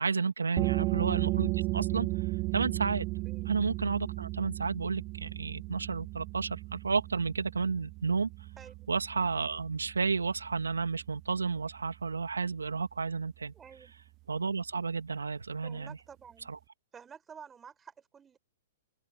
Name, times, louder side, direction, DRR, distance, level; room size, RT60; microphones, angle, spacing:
voice 1, 0.0-2.1 2.5-3.1 3.5-8.3 8.9-13.5 14.3-16.0 16.5-16.6, right 5 dB, 90° right, 2.7 m, -31 dB
sound 1, 0.6-11.9, right 22 dB, 35° right, 0.8 m, -35 dB
voice 2, 13.5-13.9 15.6-16.5 16.9-18.4, right 7 dB, 15° right, 4.4 m, -51 dB
open air
hypercardioid pair, 120°, 0 cm